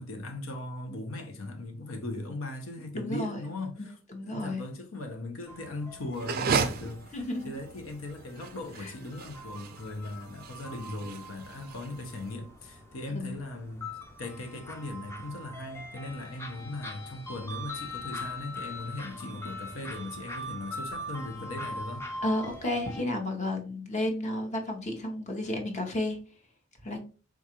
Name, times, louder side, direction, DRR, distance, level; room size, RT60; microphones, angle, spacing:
voice 1, 0.0-4.0 4.2-13.9 14.2-22.1, left 2 dB, 85° left, 0.7 m, -39 dB
voice 2, 3.0-3.5 4.1-4.6 7.1-7.6 8.8-8.9 13.1-13.4 22.2-26.2 26.8-27.0, left 1 dB, 35° left, 0.8 m, -32 dB
sound 1, 5.5-23.0, left 1 dB, 15° left, 0.4 m, -42 dB
sound 2, 6.1-12.3, right 5 dB, 50° right, 0.4 m, -34 dB
3.8 x 2.3 x 2.8 m
head